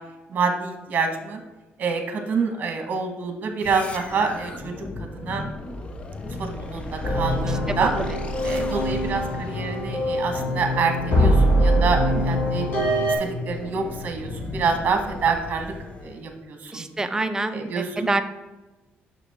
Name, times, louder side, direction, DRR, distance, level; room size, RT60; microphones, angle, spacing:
voice 1, 0.3-1.4 1.8-4.7 5.1-5.5 6.4-7.9 8.4-12.7 13.1-15.7 16.0-16.9 17.5-18.1, right 4 dB, 45° right, 5 dB, 1.3 m, -27 dB
sound 1, 3.6-16.3, left 2 dB, 30° left, 0.7 m, -35 dB
sound 2, 7.0-13.1, equal, 55° left, 2.6 m, -23 dB
voice 2, 16.7-18.2, right 2 dB, 15° right, 9 dB, 0.6 m, -26 dB
6.9 x 6.0 x 3.6 m, 1.1 s
cardioid pair, 120°, 4 cm